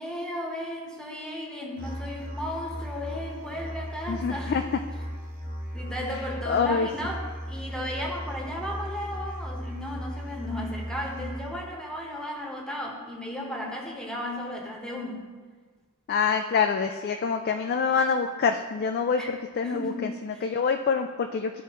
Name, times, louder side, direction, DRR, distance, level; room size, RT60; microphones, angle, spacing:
voice 1, 0.0-4.6 5.7-15.2 19.2-19.3 19.6-20.5, left 1 dB, 5° left, -1 dB, 1.0 m, -35 dB
Musical instrument, 1.8-11.7, equal, 35° right, 1.6 m, -37 dB
voice 2, 4.1-4.6 6.5-6.9 16.1-21.6, left 5 dB, 50° left, 6 dB, 0.3 m, -26 dB
13.0 x 4.5 x 3.0 m, 1.5 s
head